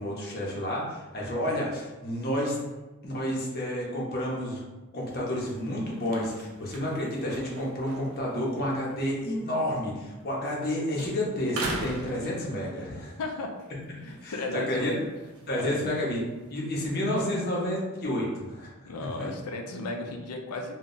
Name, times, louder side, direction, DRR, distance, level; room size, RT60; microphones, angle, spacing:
voice 1, 0.0-2.6 3.0-4.6 4.9-13.2 14.0-14.9 15.5-16.2 16.5-18.7 19.0-19.3, left 1 dB, 45° left, -3 dB, 0.7 m, -30 dB
sound 1, 5.0-10.7 10.9-13.0 13.4-16.5, right 2 dB, 75° right, 0.5 m, -42 dB
voice 2, 13.2-13.5 14.0-15.0 15.6-15.9 18.9-20.7, left 2 dB, 85° left, 3 dB, 0.4 m, -35 dB
2.2 x 2.0 x 3.7 m, 1.1 s
head